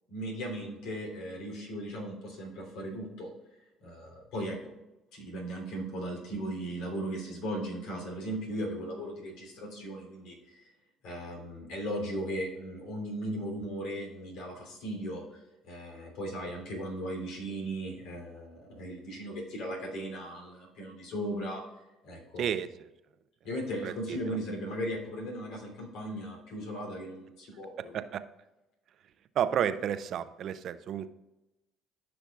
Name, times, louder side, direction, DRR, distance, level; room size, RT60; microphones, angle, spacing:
voice 1, 0.1-3.3 3.8-4.6 5.1-10.7 11.0-15.2 15.6-21.6 22.0-22.5 23.4-28.0, equal, 85° left, 0 dB, 3.2 m, -37 dB
voice 2, 22.4-22.7 23.8-24.4 27.9-28.2 29.4-31.1, right 9 dB, 60° right, 13 dB, 0.5 m, -31 dB
14.0 x 6.0 x 2.4 m, 0.99 s
supercardioid pair, 90°, 0 cm